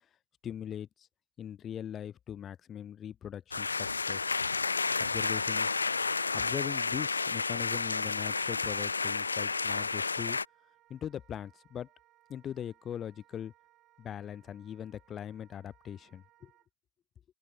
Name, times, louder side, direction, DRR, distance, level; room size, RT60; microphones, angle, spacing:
voice 1, 0.4-1.1 1.4-4.4 5.0-5.9 6.3-10.4 10.9-11.9 12.3-13.5 14.0-16.5, left 9 dB, 25° left, 0.6 m, -41 dB
sound 1, 3.5-10.5, left 4 dB, 75° left, 0.4 m, -31 dB
Wind instrument woodwind instrument, 8.3-16.7, right 14 dB, 35° right, 5.9 m, -66 dB
open air
figure-of-eight pair, 90°, 0 cm